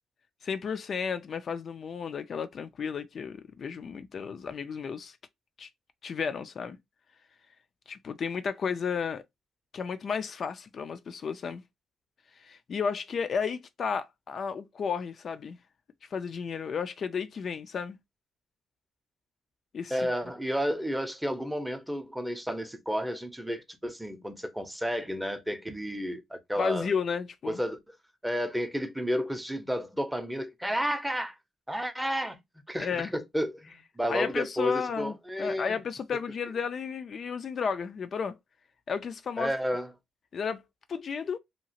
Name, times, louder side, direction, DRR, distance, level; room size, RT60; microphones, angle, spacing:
voice 1, 0.4-5.2 5.6-5.7 6.0-6.8 7.9-9.2 9.7-11.6 12.4-15.6 16.1-18.0 19.7-20.0 26.6-27.6 32.8-33.1 34.1-38.3 38.9-39.5 40.3-40.6 40.9-41.4, left 6 dB, 50° left, 0.3 m, -33 dB
voice 2, 19.9-26.9 27.5-28.0 28.2-31.4 31.7-32.4 32.7-35.8 39.4-39.9, equal, 5° right, 0.6 m, -31 dB
2.8 x 2.4 x 2.7 m
cardioid pair, 90°, 0 cm